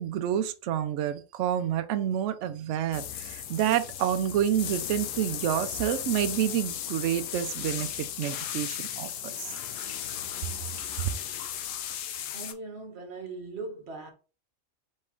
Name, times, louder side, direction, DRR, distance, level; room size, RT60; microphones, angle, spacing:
voice 1, 0.0-9.5, right 10 dB, 65° right, 0.8 m, -29 dB
sound 1, 2.9-12.5, left 10 dB, 70° left, 0.9 m, -36 dB
voice 2, 12.3-14.1, right 3 dB, 50° right, 1.3 m, -39 dB
4.3 x 3.2 x 3.6 m
omnidirectional pair, 1.5 m